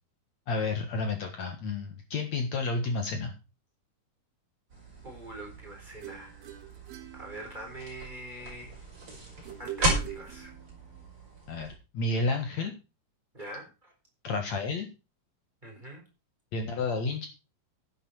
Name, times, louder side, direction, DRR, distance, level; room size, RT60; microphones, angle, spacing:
voice 1, 0.5-3.3 11.5-12.7 14.2-14.9 16.5-17.3, left 3 dB, 60° left, 4 dB, 2.7 m, -31 dB
sound 1, 4.7-11.8, right 2 dB, 40° right, 5.9 m, -36 dB
voice 2, 5.0-6.5 7.1-8.8 9.6-10.6 13.3-13.9 15.6-16.0, right 1 dB, 15° right, 1 dB, 4.2 m, -44 dB
sound 2, 6.0-8.0 9.4-11.0, right 12 dB, 75° right, 3.3 m, -44 dB
11.0 x 10.5 x 4.5 m, 0.30 s
omnidirectional pair, 3.9 m